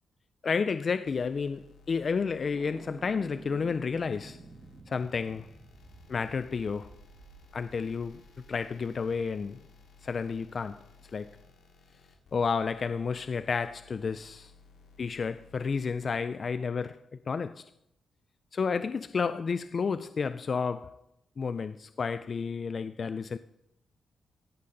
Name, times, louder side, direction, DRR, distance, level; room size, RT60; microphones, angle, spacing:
voice 1, 0.4-4.4 4.9-5.5 6.1-6.9 7.5-8.2 8.5-9.6 10.0-10.8 11.1-11.4 12.3-14.5 15.0-17.7 18.5-21.0 21.4-23.4, left 5 dB, 45° left, 0.4 m, -31 dB
sound 1, 1.1-16.2, left 4 dB, 85° left, 2.2 m, -58 dB
sound 2, 2.5-8.6, right 4 dB, 40° right, 1.1 m, -51 dB
15.5 x 11.0 x 3.9 m
cardioid pair, 105°, 0 cm